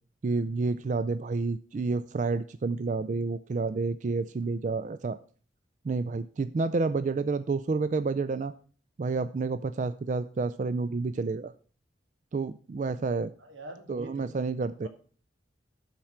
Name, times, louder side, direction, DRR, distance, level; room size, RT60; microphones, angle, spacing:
voice 1, 0.2-5.2 5.8-8.5 9.0-11.5 12.3-13.3 13.9-14.9, right 4 dB, 40° right, 13 dB, 0.3 m, -29 dB
voice 2, 13.4-14.3 14.8-14.9, right 1 dB, 90° right, 5 dB, 2.1 m, -44 dB
12.0 x 4.5 x 5.7 m, 0.42 s
head